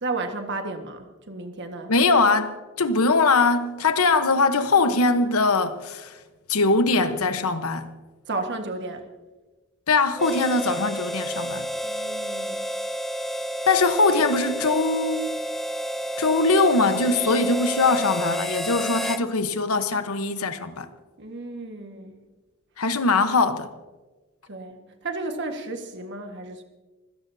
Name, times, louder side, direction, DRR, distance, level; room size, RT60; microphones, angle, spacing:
voice 1, 0.0-1.9 8.3-9.0 11.8-12.7 21.2-22.2 24.5-26.6, right 3 dB, 55° right, 1.6 m, -33 dB
voice 2, 1.9-6.2 6.5-7.9 9.9-11.7 13.7-15.3 16.2-20.9 22.8-23.7, left 3 dB, 85° left, 1.1 m, -21 dB
Harmonica, 10.2-19.3, equal, ahead, 0.4 m, -30 dB
25.5 x 16.5 x 2.8 m
head